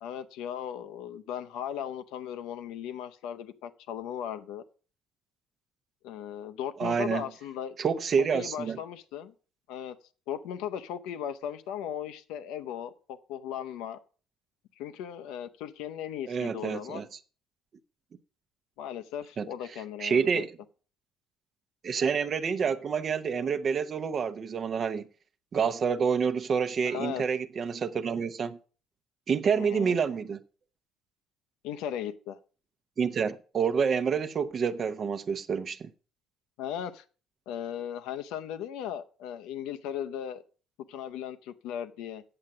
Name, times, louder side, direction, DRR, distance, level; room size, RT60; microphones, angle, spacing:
voice 1, 0.0-4.6 6.0-7.8 8.2-9.3 9.7-10.0 10.3-14.0 14.8-17.1 18.8-20.4 26.8-27.2 29.5-30.0 31.6-32.4 36.6-37.0 37.5-40.4 40.9-42.2, left 9 dB, 65° left, 0.7 m, -37 dB
voice 2, 6.8-7.2 7.8-8.8 16.3-17.1 19.4-19.5 20.0-20.5 21.8-25.0 25.5-28.6 29.3-30.4 33.0-35.9, right 6 dB, 45° right, 0.8 m, -28 dB
8.8 x 7.5 x 6.0 m
figure-of-eight pair, 50°, 0 cm